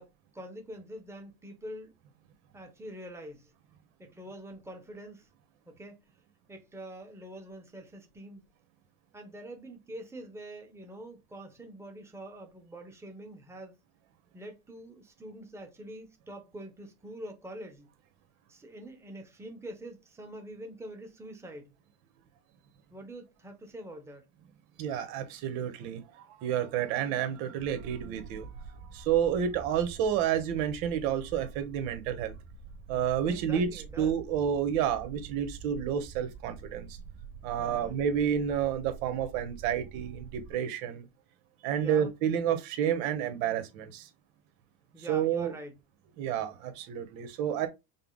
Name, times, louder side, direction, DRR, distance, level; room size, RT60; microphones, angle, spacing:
voice 1, 0.0-2.0 2.5-3.5 4.0-5.3 5.7-6.0 6.5-8.4 9.1-13.8 14.3-17.9 18.5-21.7 22.9-24.2 33.3-34.1 37.6-38.0 40.9-41.1 41.8-42.1 44.9-45.8, right 1 dB, 5° right, 1.0 m, -45 dB
voice 2, 24.8-26.0 26.4-32.3 32.9-36.9 37.4-41.0 41.6-44.1 45.1-45.5 46.2-47.7, right 9 dB, 75° right, 1.2 m, -30 dB
sound 1, 27.6-40.5, right 5 dB, 25° right, 1.1 m, -47 dB
5.4 x 2.0 x 3.9 m
supercardioid pair, 110°, 42 cm